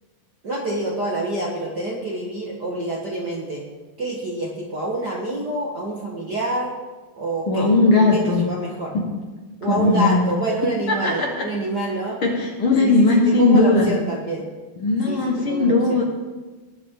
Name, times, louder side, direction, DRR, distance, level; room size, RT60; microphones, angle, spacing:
voice 1, 0.4-3.6 4.0-6.7 7.2-7.7 7.9-8.9 9.6-12.2 12.8-14.5 15.1-16.0, right 1 dB, 65° right, -3 dB, 1.0 m, -27 dB
voice 2, 7.5-8.4 9.7-10.2 11.0-11.4 12.2-13.9 14.8-16.0, left 2 dB, 55° left, -1 dB, 1.5 m, -18 dB
20.0 x 8.3 x 3.7 m, 1.3 s
omnidirectional pair, 4.2 m